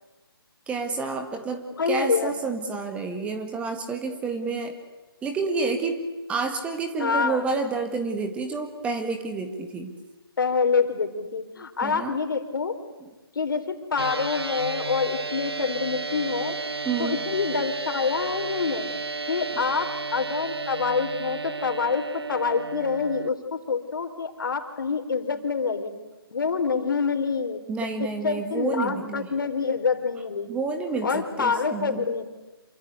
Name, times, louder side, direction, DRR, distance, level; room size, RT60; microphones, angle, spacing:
voice 1, 0.7-4.8 5.2-6.0 6.3-9.9 11.8-12.2 13.0-13.1 16.8-17.2 27.7-29.3 30.5-32.1, right 4 dB, 10° right, 5 dB, 1.9 m, -29 dB
voice 2, 1.8-2.3 7.0-7.4 10.4-12.8 13.4-16.6 17.0-18.9 19.3-25.9 26.3-27.6 28.2-30.5 31.0-32.2, left 5 dB, 60° left, 7 dB, 3.9 m, -26 dB
sound 1, 14.0-23.3, right 3 dB, 80° right, 1.7 m, -32 dB
28.0 x 24.5 x 8.2 m, 1.2 s
figure-of-eight pair, 150°, 13 cm